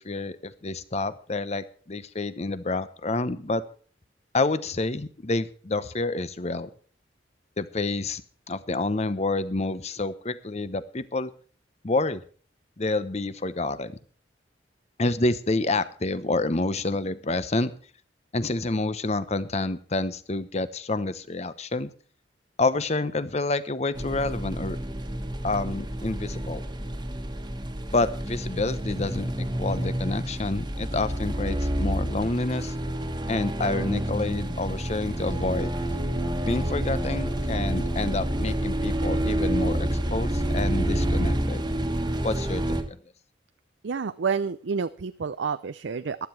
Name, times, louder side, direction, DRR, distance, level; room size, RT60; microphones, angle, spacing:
voice 1, 0.0-3.6 4.3-6.7 7.6-8.2 8.5-11.3 11.8-12.2 12.8-14.0 15.0-17.7 18.3-21.9 22.6-24.8 25.4-26.6 27.9-32.7 33.3-35.7 36.5-41.6 42.2-43.0, left 2 dB, 35° left, 14 dB, 0.9 m, -28 dB
sound 1, 24.0-42.8, right 1 dB, 25° right, 1.5 m, -28 dB
voice 2, 43.8-46.3, right 5 dB, 80° right, 13 dB, 0.5 m, -29 dB
15.0 x 11.5 x 4.6 m, 0.41 s
head